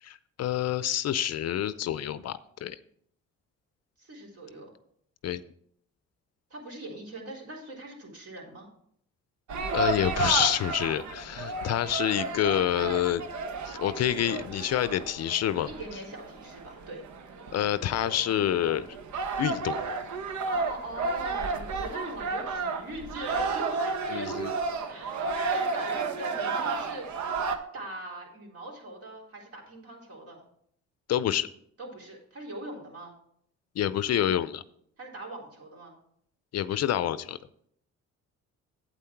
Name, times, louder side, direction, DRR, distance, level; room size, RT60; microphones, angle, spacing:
voice 1, 0.0-2.8 5.2-5.4 9.7-13.2 13.7-15.7 17.5-18.9 19.4-20.0 24.1-24.5 31.1-31.5 33.8-34.6 36.5-37.4, left 11 dB, 55° left, 15 dB, 0.5 m, -27 dB
voice 2, 4.0-4.7 6.5-8.7 15.7-17.0 20.5-24.5 24.9-27.4 27.7-30.4 31.8-33.1 35.0-36.0, right 2 dB, 50° right, -1 dB, 3.8 m, -41 dB
sound 1, 9.5-27.6, right 4 dB, 70° right, 1.1 m, -32 dB
8.5 x 8.5 x 4.5 m, 0.67 s
cardioid pair, 90°, 30 cm